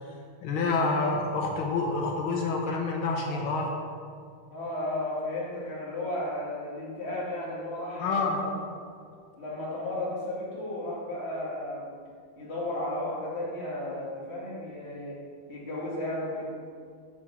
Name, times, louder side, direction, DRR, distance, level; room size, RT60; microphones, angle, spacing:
voice 1, 0.4-3.7 8.0-8.4, left 3 dB, 90° left, 1 dB, 1.8 m, -28 dB
voice 2, 4.5-8.5 9.4-11.9 12.4-16.5, left 1 dB, 30° left, -6 dB, 2.1 m, -34 dB
7.4 x 5.1 x 6.9 m, 2.2 s
omnidirectional pair, 2.2 m